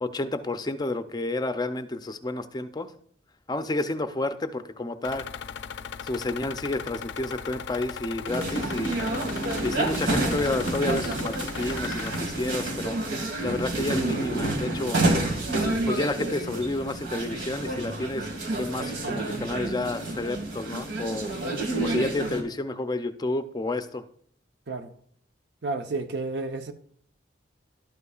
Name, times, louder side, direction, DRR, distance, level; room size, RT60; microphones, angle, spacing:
voice 1, 0.0-2.9 3.5-5.2 6.0-9.0 9.6-13.0 13.4-15.0 15.8-21.3 21.8-24.0, left 2 dB, 20° left, 0.5 m, -30 dB
sound 1, 5.0-12.2, left 7 dB, 80° left, 0.5 m, -38 dB
sound 2, 8.3-22.4, right 2 dB, 85° right, 2.0 m, -29 dB
voice 2, 25.6-26.7, right 3 dB, 65° right, 0.8 m, -31 dB
12.0 x 8.2 x 2.4 m
head